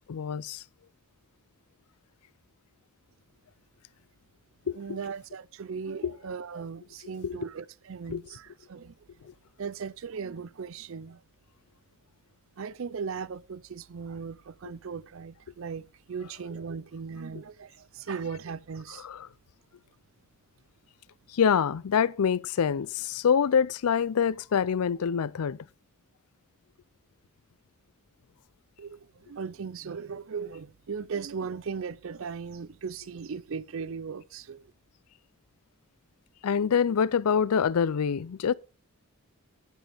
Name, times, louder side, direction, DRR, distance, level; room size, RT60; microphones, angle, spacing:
voice 1, 0.1-0.6 4.7-4.8 6.0-6.1 7.2-7.4 8.1-8.2 19.0-19.3 21.3-25.6 36.4-38.5, left 7 dB, 85° left, 0.4 m, -25 dB
voice 2, 4.7-8.9 9.6-11.2 12.6-19.0 28.8-34.6, right 5 dB, 65° right, 0.5 m, -38 dB
11.0 x 10.5 x 3.5 m
head